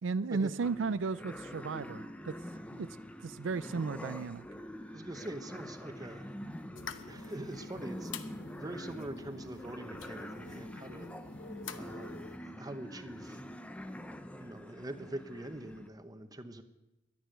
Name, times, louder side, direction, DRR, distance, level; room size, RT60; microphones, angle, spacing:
voice 1, 0.0-2.4 2.7-2.9 3.2-4.4, right 4 dB, 85° right, 15 dB, 0.5 m, -34 dB
sound 1, 0.6-15.9, equal, 5° left, 0.6 m, -45 dB
voice 2, 4.9-6.3 7.1-8.3 8.6-11.1 11.8-13.4 14.4-16.6, right 1 dB, 20° right, 9 dB, 0.9 m, -44 dB
sound 2, 6.8-12.4, left 6 dB, 90° left, 0.9 m, -48 dB
11.5 x 10.0 x 9.2 m, 0.99 s
head